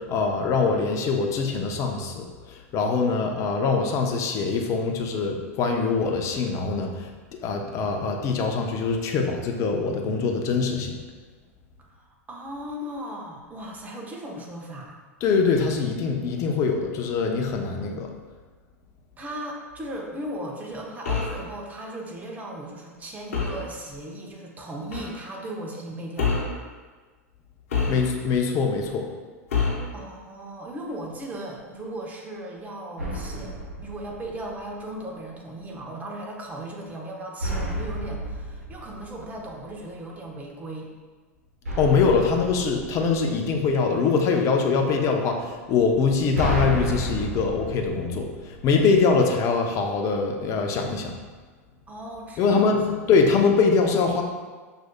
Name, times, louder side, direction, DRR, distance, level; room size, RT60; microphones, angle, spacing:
voice 1, 0.0-10.9 15.2-18.1 27.9-29.1 41.8-51.1 52.4-52.8 53.1-54.2, left 4 dB, 40° left, 2 dB, 0.6 m, -23 dB
voice 2, 11.9-15.0 19.2-26.3 29.9-40.9 51.9-53.0, right 1 dB, 20° right, -1 dB, 0.8 m, -37 dB
sound 1, 21.0-21.4 23.3-23.7 24.9-25.1 26.2-26.6 27.7-28.4 29.5-29.9, left 5 dB, 75° left, 0.9 m, -26 dB
sound 2, 33.0-34.9 37.4-39.8 41.6-43.9 45.9-48.9, equal, 85° right, 0.9 m, -32 dB
6.1 x 2.6 x 2.2 m, 1.4 s
hypercardioid pair, 95°, 8 cm